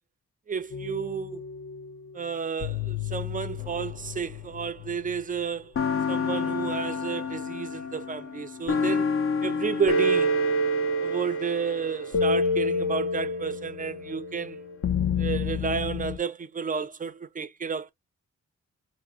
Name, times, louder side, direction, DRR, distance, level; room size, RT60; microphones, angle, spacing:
voice 1, 0.5-1.4 2.1-5.7 6.1-9.1 9.4-10.4 11.0-14.6 15.2-17.9, right 6 dB, 30° right, 0.3 m, -31 dB
sound 1, 0.7-1.9 2.6-5.2 5.7-16.2, left 2 dB, 45° left, 0.5 m, -28 dB
4.6 x 2.0 x 2.3 m
wide cardioid pair, 130°, 30 cm